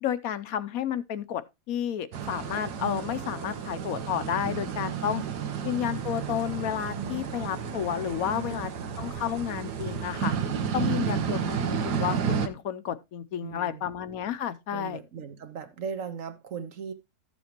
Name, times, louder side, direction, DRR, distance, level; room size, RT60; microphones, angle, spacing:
voice 1, 0.0-1.4 1.7-5.2 5.6-8.7 9.0-10.4 10.7-15.0, left 9 dB, 70° left, 1.0 m, -31 dB
sound 1, 2.1-12.5, right 7 dB, 85° right, 1.5 m, -32 dB
sound 2, 2.3-8.4, right 5 dB, 15° right, 1.1 m, -45 dB
voice 2, 4.9-5.3 8.3-8.9 10.8-11.2 13.4-13.9 14.7-16.9, right 6 dB, 55° right, 1.3 m, -38 dB
13.0 x 7.2 x 2.9 m
omnidirectional pair, 1.7 m